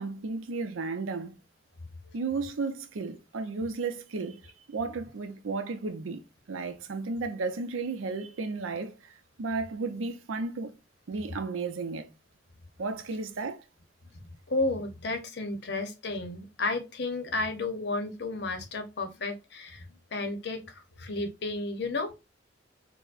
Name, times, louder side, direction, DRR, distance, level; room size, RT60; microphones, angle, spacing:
voice 1, 0.0-1.3 2.1-4.4 4.7-6.2 6.5-8.9 9.4-10.7 11.1-12.1 12.8-13.6, right 4 dB, 90° right, 0.5 m, -33 dB
voice 2, 14.5-19.8 20.1-22.1, left 2 dB, 55° left, 0.7 m, -32 dB
4.5 x 2.1 x 2.4 m
head